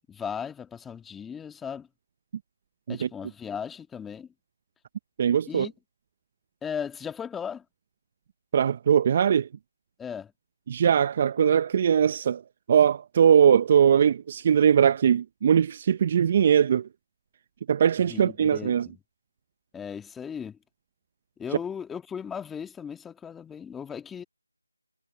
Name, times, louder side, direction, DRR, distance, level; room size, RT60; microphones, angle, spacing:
voice 1, 0.1-1.9 2.9-4.3 5.5-5.7 6.6-7.6 10.0-10.3 18.0-19.0 19.7-20.6 21.4-24.2, left 7 dB, 5° left, 2.0 m, -37 dB
voice 2, 5.2-5.7 8.5-9.5 10.7-12.4 12.7-16.9 17.7-18.9, right 8 dB, 25° right, 0.8 m, -21 dB
figure-of-eight pair, 165°, 0 cm